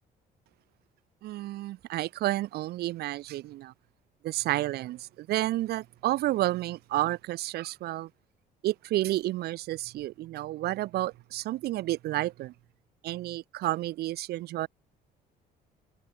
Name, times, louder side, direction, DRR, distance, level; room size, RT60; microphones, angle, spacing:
voice 1, 1.2-3.7 4.2-8.1 8.6-12.5 13.0-14.7, right 16 dB, 70° right, 0.7 m, -31 dB
cardioid pair, 110°, 17 cm